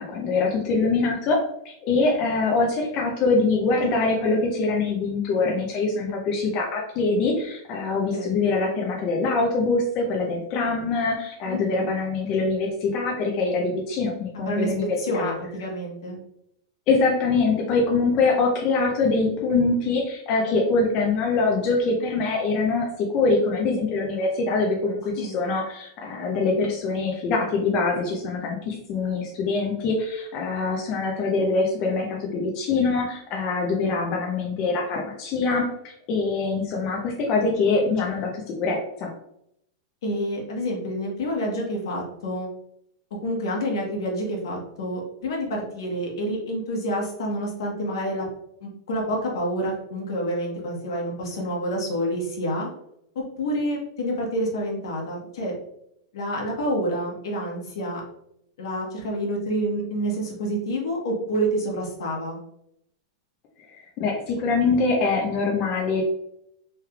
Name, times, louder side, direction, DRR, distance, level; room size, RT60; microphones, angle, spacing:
voice 1, 0.0-15.3 16.9-39.1 64.0-66.0, left 3 dB, 30° left, 0 dB, 0.5 m, -24 dB
voice 2, 11.5-11.9 14.4-16.2 25.2-25.4 40.0-42.5 43.2-48.2 48.6-52.7 53.1-55.5 56.1-58.0 58.6-62.4, equal, 75° left, -1 dB, 1.1 m, -28 dB
3.3 x 3.2 x 2.3 m, 0.76 s
supercardioid pair, 165°, 2 cm